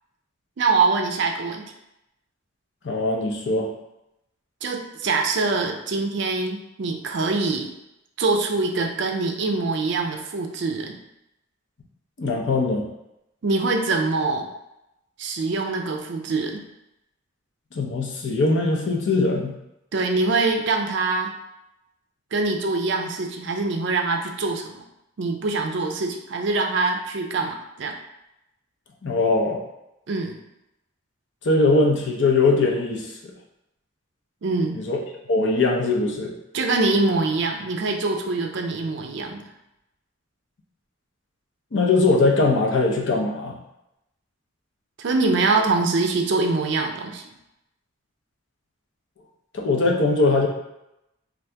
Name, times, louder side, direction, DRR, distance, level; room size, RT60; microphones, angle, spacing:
voice 1, 0.6-1.7 4.6-7.7 8.2-11.0 13.4-14.5 15.2-16.6 19.9-21.3 22.3-24.8 25.2-28.0 30.1-30.4 34.4-34.8 36.5-39.4 45.0-47.2, right 3 dB, 60° right, 3 dB, 0.4 m, -24 dB
voice 2, 2.8-3.7 12.2-12.8 17.7-19.5 29.0-29.6 31.4-33.1 34.7-35.0 35.3-36.3 41.7-43.6 49.5-50.5, left 3 dB, 60° left, 0 dB, 0.5 m, -21 dB
2.7 x 2.5 x 3.3 m, 0.88 s
head